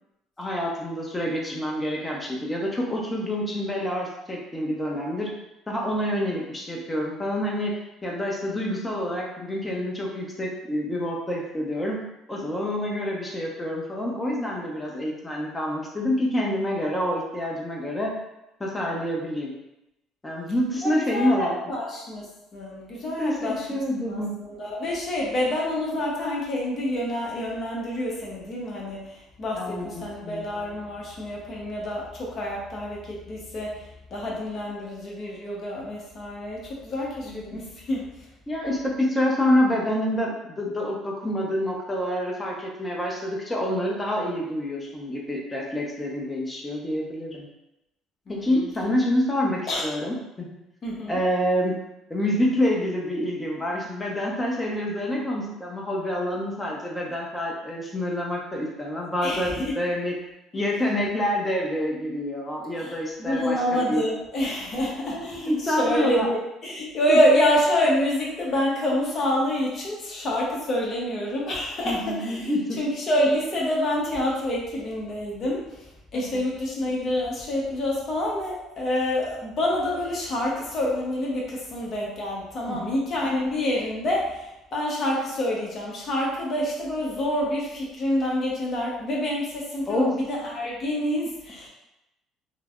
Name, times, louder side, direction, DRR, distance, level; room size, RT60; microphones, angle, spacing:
voice 1, 0.4-5.3 5.7-7.7 8.0-12.0 12.3-18.1 18.6-19.5 20.2-21.5 23.2-24.4 29.6-30.5 37.2-37.6 38.5-47.5 48.3-50.5 51.1-51.7 52.1-60.1 60.5-64.0 65.1-66.3 67.1-67.2 71.8-72.8 76.1-76.4 82.7-83.0 89.9-90.1, left 1 dB, 15° left, -2 dB, 0.7 m, -27 dB
voice 2, 20.8-38.1 48.3-48.7 49.7-49.9 50.8-51.2 59.2-59.7 62.8-62.9 63.2-72.5 72.8-91.7, left 1 dB, 45° left, -4 dB, 1.0 m, -27 dB
3.2 x 2.1 x 2.4 m, 0.89 s
supercardioid pair, 90°, 0 cm